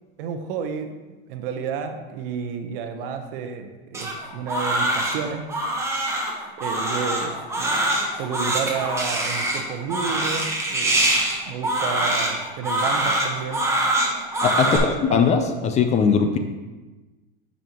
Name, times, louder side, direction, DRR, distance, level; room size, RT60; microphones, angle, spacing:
voice 1, 0.2-5.5 6.6-11.0 11.4-13.7 14.6-15.3, right 6 dB, 65° right, 6 dB, 0.9 m, -31 dB
Crying sobbing, 3.9-14.8, right 1 dB, 10° right, 1.0 m, -24 dB
voice 2, 14.4-16.4, left 6 dB, 25° left, 6 dB, 0.4 m, -20 dB
8.7 x 5.4 x 2.9 m, 1.2 s
supercardioid pair, 135°, 30 cm